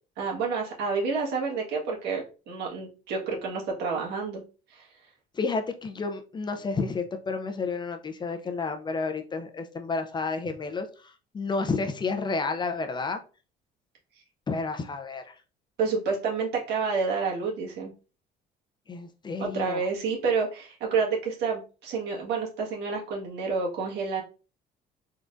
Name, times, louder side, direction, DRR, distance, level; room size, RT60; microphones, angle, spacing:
voice 1, 0.2-4.4 4.7-4.9 15.8-17.9 19.4-24.2, right 5 dB, 80° right, -2 dB, 1.6 m, -29 dB
voice 2, 5.3-13.2 14.5-15.4 18.9-19.8, left 4 dB, 25° left, 6 dB, 0.5 m, -31 dB
3.7 x 3.4 x 2.6 m, 0.35 s
cardioid pair, 110°, 17 cm